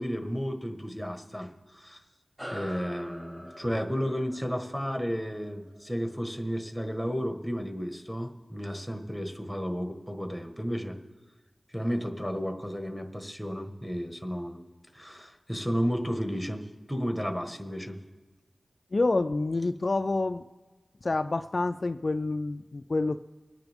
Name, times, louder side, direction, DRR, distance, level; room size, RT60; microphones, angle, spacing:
voice 1, 0.0-2.0 2.5-11.0 11.7-14.6 14.9-18.0, equal, ahead, 5 dB, 1.4 m, -33 dB
sound 1, 2.4-7.2, equal, 20° right, 2.5 m, -45 dB
voice 2, 18.9-20.4 21.0-23.2, left 2 dB, 50° left, 8 dB, 0.4 m, -28 dB
25.0 x 9.2 x 3.5 m, 1.3 s
wide cardioid pair, 60°, 0 cm